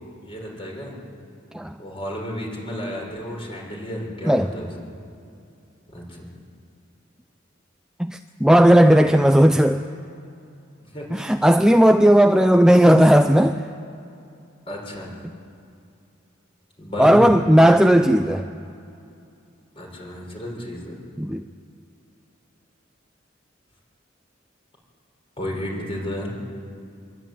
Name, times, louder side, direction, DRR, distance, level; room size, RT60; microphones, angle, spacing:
voice 1, 0.2-1.0 1.8-4.7 5.9-6.3 10.8-11.3 14.7-15.1 16.8-17.2 19.7-21.0 25.4-26.3, equal, 30° left, -1 dB, 6.3 m, -32 dB
voice 2, 8.0-9.8 11.1-13.6 17.0-18.5 21.2-21.4, equal, 5° right, 6 dB, 0.5 m, -15 dB
25.5 x 22.0 x 9.4 m, 2.6 s
head